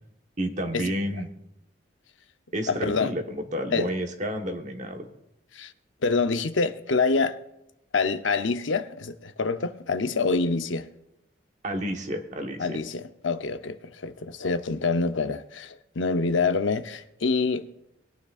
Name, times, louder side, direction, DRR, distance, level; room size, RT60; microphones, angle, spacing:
voice 1, 0.4-1.3 2.5-5.0 11.6-12.8, equal, 40° right, 1.2 m, -30 dB
voice 2, 2.7-3.1 3.7-3.9 5.5-5.7 6.0-7.4 7.9-10.9 12.6-17.7, left 4 dB, 80° left, 0.7 m, -26 dB
21.0 x 9.5 x 2.4 m
head